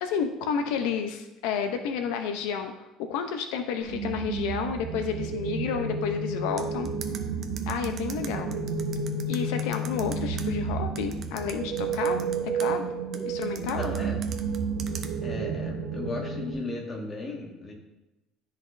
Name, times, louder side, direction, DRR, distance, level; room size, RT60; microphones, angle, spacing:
voice 1, 0.0-2.7 3.0-6.9 7.7-8.6 9.3-12.9 13.2-13.8, left 7 dB, 85° left, 6 dB, 0.6 m, -31 dB
sound 1, 3.8-16.5, right 4 dB, 90° right, 0.9 m, -31 dB
sound 2, 6.6-10.4 11.0-12.7 13.1-15.1, right 8 dB, 35° right, 0.5 m, -41 dB
voice 2, 13.6-14.2 15.2-17.7, left 2 dB, 20° left, 0 dB, 1.1 m, -36 dB
12.0 x 4.1 x 2.5 m, 0.97 s
cardioid pair, 170°, 0 cm